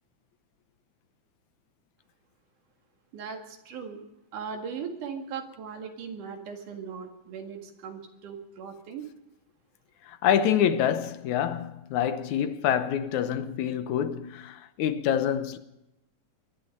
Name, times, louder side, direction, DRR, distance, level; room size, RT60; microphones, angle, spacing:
voice 1, 3.1-4.0 4.3-9.1, right 6 dB, 80° right, 3.5 m, -38 dB
voice 2, 10.1-15.6, left 9 dB, 75° left, 2.2 m, -26 dB
23.5 x 11.5 x 5.4 m
omnidirectional pair, 3.5 m